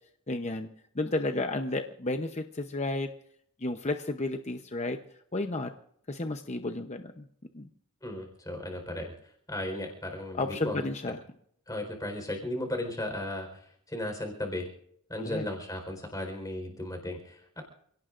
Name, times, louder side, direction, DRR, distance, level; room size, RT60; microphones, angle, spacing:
voice 1, 0.3-0.7 0.9-3.1 3.6-5.0 5.3-5.7 6.1-7.3 7.5-7.7 10.3-11.2 15.2-15.5, left 2 dB, 30° left, 6 dB, 0.8 m, -32 dB
voice 2, 8.0-9.1 9.5-10.8 11.7-14.7 15.1-17.6, left 1 dB, 15° left, 4 dB, 4.3 m, -35 dB
28.5 x 17.5 x 2.6 m, 0.67 s
head